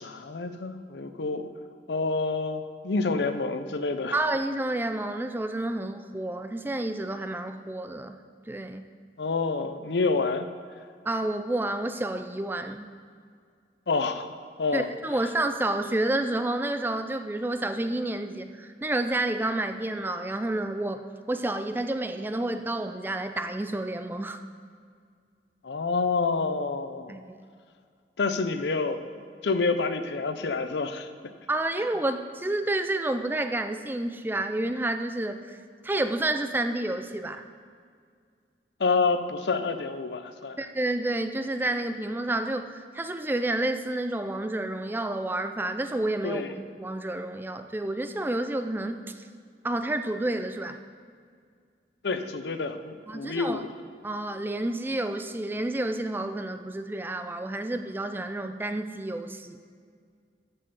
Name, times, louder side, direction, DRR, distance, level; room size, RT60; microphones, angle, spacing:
voice 1, 0.0-1.5 1.9-4.2 9.2-10.5 13.9-14.3 14.6-14.9 25.6-27.1 28.2-29.0 29.4-31.1 38.8-40.6 46.2-46.5 52.0-53.7, left 4 dB, 75° left, 10 dB, 0.6 m, -28 dB
voice 2, 4.1-8.8 11.0-12.9 14.7-24.4 27.1-27.4 31.5-35.6 35.8-37.4 40.6-49.3 49.6-50.8 53.1-53.6 54.0-59.6, right 1 dB, 10° right, 8 dB, 0.3 m, -30 dB
13.5 x 5.5 x 5.4 m, 2.1 s
head